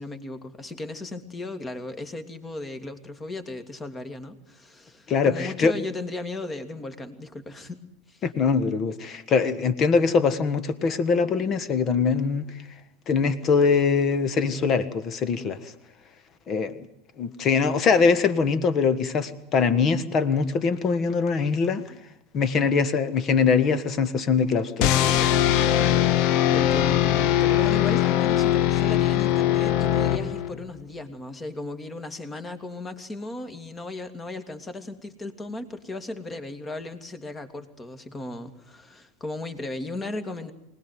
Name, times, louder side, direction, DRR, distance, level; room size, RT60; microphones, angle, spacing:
voice 1, 0.0-7.8 8.1-8.2 26.5-40.5, left 2 dB, 20° left, 2.6 m, -36 dB
voice 2, 5.1-5.7 8.2-12.4 13.1-15.7 16.5-16.7 17.2-21.8 22.3-25.3, left 5 dB, 35° left, 1.9 m, -23 dB
sound 1, 24.8-30.7, left 12 dB, 50° left, 1.0 m, -21 dB
24.5 x 19.5 x 9.5 m
figure-of-eight pair, 85°, 0 cm